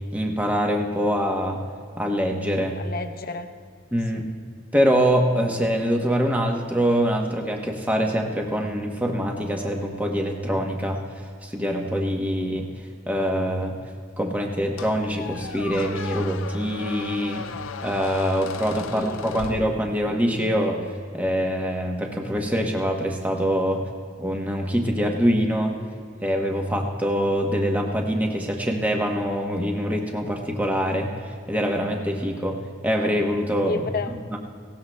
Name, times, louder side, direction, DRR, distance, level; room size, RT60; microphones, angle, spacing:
voice 1, 0.1-1.6 2.0-2.8 3.9-4.3 4.7-12.7 13.1-13.8 14.2-17.4 17.8-20.8 21.1-23.8 24.2-25.8 26.2-32.6 32.8-33.8 34.3-34.4, equal, 10° right, 1 dB, 0.9 m, -24 dB
voice 2, 2.8-3.5 4.1-4.3 18.9-19.9 33.7-34.2, left 3 dB, 50° left, 6 dB, 0.8 m, -32 dB
Squeak, 14.8-20.3, left 6 dB, 75° left, 0.5 m, -36 dB
19.0 x 17.0 x 2.2 m, 2.2 s
head